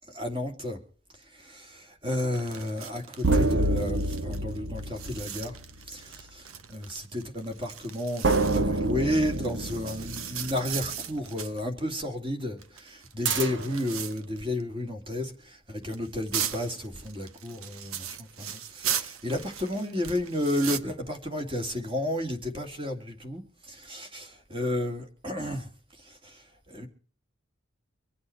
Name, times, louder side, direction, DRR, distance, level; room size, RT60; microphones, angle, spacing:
voice 1, 0.1-0.8 1.3-5.6 5.9-25.7 26.0-26.9, left 1 dB, 25° right, 2.6 m, -32 dB
sound 1, 2.1-11.6 12.4-14.6 14.9-15.0 15.8-20.8, right 8 dB, 90° right, 1.1 m, -38 dB
sound 2, 3.2-6.0 8.2-10.9 13.3-13.9, right 2 dB, 60° right, 1.1 m, -28 dB
25.0 x 8.6 x 4.6 m
head